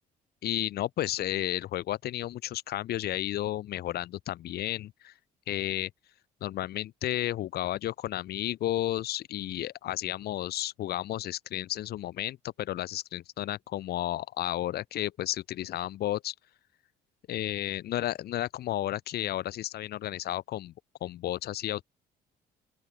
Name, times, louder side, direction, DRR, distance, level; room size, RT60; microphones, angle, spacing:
voice 1, 0.4-5.1 5.5-5.9 6.4-16.3 17.3-20.7 21.0-21.8, left 13 dB, 70° left, 5.7 m, -32 dB
open air
cardioid pair, 110°, 17 cm